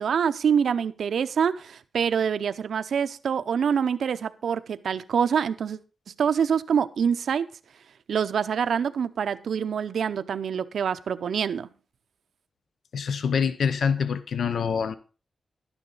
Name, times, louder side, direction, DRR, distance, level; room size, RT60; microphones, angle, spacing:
voice 1, 0.0-5.8 6.2-7.5 8.1-11.7, right 7 dB, 80° right, 0.6 m, -25 dB
voice 2, 12.9-14.9, left 6 dB, 75° left, 0.7 m, -25 dB
12.0 x 9.8 x 3.9 m
wide cardioid pair, 160°, 0 cm